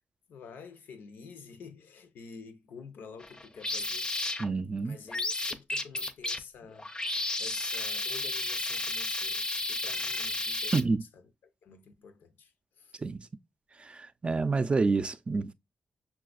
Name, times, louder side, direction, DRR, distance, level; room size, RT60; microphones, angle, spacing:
voice 1, 0.3-4.1 4.8-6.9 7.4-11.2 11.6-13.0, left 5 dB, 85° left, 0.6 m, -49 dB
sound 1, 3.2-4.7 5.1-10.8, left 2 dB, 25° left, 0.5 m, -33 dB
voice 2, 4.4-5.0 10.7-11.0 13.0-13.2 13.8-15.5, right 4 dB, 35° right, 0.3 m, -28 dB
5.6 x 2.3 x 2.3 m
cardioid pair, 70°, 3 cm